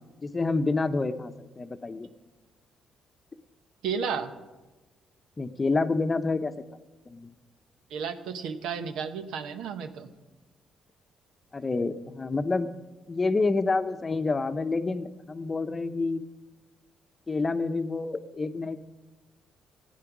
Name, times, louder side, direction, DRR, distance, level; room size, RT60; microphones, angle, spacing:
voice 1, 0.2-2.1 5.4-6.5 7.1-7.3 11.5-12.7 13.1-16.2 17.3-18.8, left 3 dB, 25° left, 10 dB, 0.7 m, -28 dB
voice 2, 3.8-4.3 7.9-10.1, right 6 dB, 90° right, 8 dB, 0.9 m, -32 dB
15.0 x 9.5 x 6.0 m, 1.2 s
cardioid pair, 90°, 0 cm